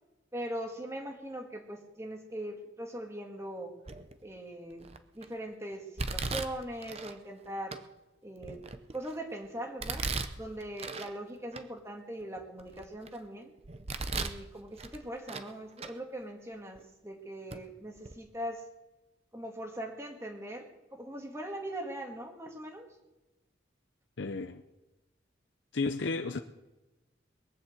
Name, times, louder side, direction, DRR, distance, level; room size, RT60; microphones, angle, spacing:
voice 1, 0.3-3.7 4.2-7.8 8.2-10.1 10.4-13.5 14.1-18.6 19.3-22.9, right 1 dB, 15° right, 3 dB, 1.8 m, -41 dB
Domestic sounds home sounds, 3.9-4.2 4.8-5.2 6.0-7.1 7.7-7.8 8.4-9.2 9.8-11.1 11.5-11.6 12.2-13.2 13.6-14.4 14.8-15.5 15.8-15.9 16.7-16.8 17.5-17.6 18.0-18.1, right 4 dB, 30° right, 0.7 m, -37 dB
voice 2, 24.2-24.6 25.7-26.4, left 3 dB, 70° left, 7 dB, 0.7 m, -32 dB
21.5 x 7.3 x 7.8 m, 1.1 s
head